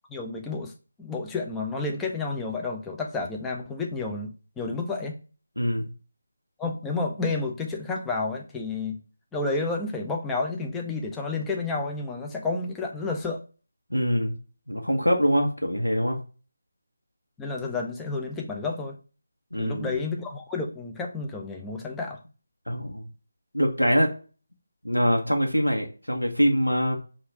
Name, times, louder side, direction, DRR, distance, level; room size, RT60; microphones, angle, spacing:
voice 1, 0.1-0.7 1.0-5.2 6.6-9.0 9.3-13.4 17.4-19.0 19.6-22.2, left 3 dB, 5° left, 0 dB, 0.4 m, -30 dB
voice 2, 5.6-5.9 13.9-14.3 14.7-16.2 19.5-20.0 22.7-23.0 23.5-24.1 24.8-27.0, equal, 85° left, 2 dB, 0.9 m, -24 dB
4.9 x 2.5 x 3.4 m, 0.36 s
figure-of-eight pair, 160°, 0 cm